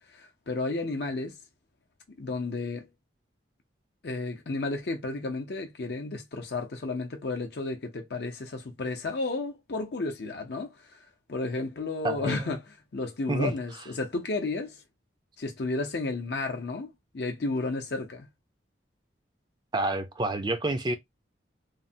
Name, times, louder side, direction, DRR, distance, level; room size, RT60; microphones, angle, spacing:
voice 1, 0.1-1.4 2.2-2.9 4.0-11.0 11.3-12.6 12.9-14.8 15.4-18.3, left 3 dB, 55° left, 0.6 m, -32 dB
voice 2, 12.0-12.5 13.3-13.5 19.7-21.0, right 2 dB, 25° right, 0.5 m, -28 dB
3.1 x 2.1 x 2.6 m
head